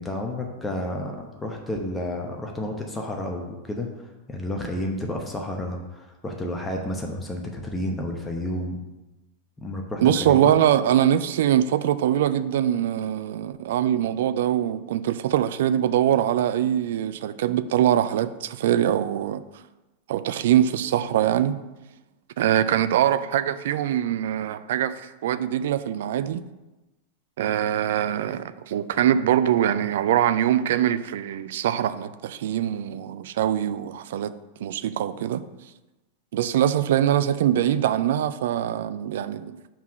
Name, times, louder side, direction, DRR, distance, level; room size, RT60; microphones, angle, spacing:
voice 1, 0.0-8.8 9.6-10.5, left 1 dB, 10° left, 0.9 m, -31 dB
voice 2, 10.0-19.4 20.1-21.6 22.4-26.4 27.4-34.3 34.6-35.4 36.3-39.5, right 11 dB, 55° right, 0.4 m, -23 dB
5.8 x 4.6 x 6.2 m
figure-of-eight pair, 90°, 0 cm